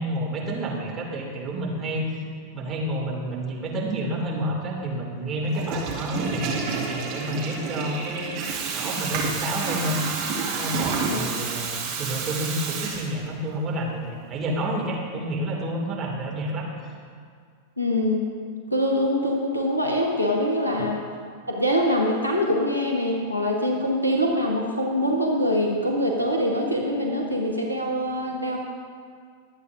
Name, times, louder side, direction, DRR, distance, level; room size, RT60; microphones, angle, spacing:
voice 1, 0.0-2.2 2.5-8.3 8.7-10.0 10.5-16.7 20.8-20.9, right 1 dB, 25° right, -3 dB, 2.5 m, -29 dB
Water tap faucet / Toilet flush, 5.4-13.5, right 5 dB, 40° right, 2.1 m, -29 dB
voice 2, 17.8-18.3 18.7-21.0 21.5-28.6, equal, 90° right, -1 dB, 1.1 m, -24 dB
22.0 x 8.4 x 2.6 m, 2.1 s
figure-of-eight pair, 90°, 0 cm